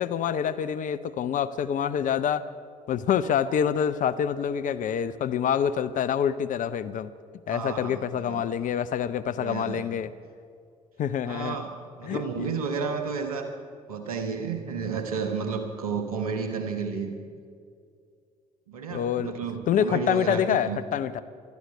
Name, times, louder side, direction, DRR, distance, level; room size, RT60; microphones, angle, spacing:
voice 1, 0.0-2.5 2.9-7.1 7.5-10.1 11.0-11.6 12.0-12.5 18.9-19.3 19.7-21.2, left 8 dB, 45° left, 12 dB, 0.6 m, -26 dB
voice 2, 7.5-8.4 9.4-9.9 11.2-13.5 13.9-17.2 18.7-20.8, right 5 dB, 80° right, 6 dB, 1.2 m, -32 dB
20.0 x 13.0 x 5.5 m, 2.3 s
figure-of-eight pair, 50°, 18 cm